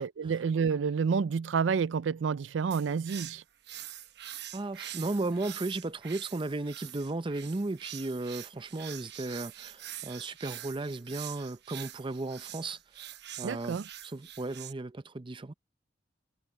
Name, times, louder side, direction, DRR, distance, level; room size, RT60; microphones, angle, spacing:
voice 1, 0.0-3.4 13.4-13.8, right 6 dB, 75° right, 0.4 m, -29 dB
sound 1, 2.7-14.7, right 12 dB, 60° right, 1.0 m, -45 dB
voice 2, 4.5-12.8 13.4-15.5, right 2 dB, 25° right, 0.6 m, -35 dB
head